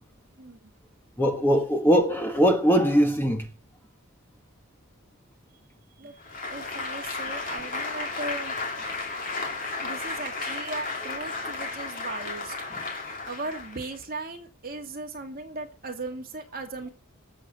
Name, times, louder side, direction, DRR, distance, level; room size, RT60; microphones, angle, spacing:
voice 1, 0.4-0.7 6.0-6.2 6.5-8.5 9.8-12.5 12.9-16.9, right 3 dB, 40° right, 2.3 m, -37 dB
voice 2, 1.2-3.5, equal, 10° left, 1.5 m, -21 dB
Applause, 6.2-13.9, left 3 dB, 40° left, 2.5 m, -33 dB
19.5 x 7.3 x 5.4 m
head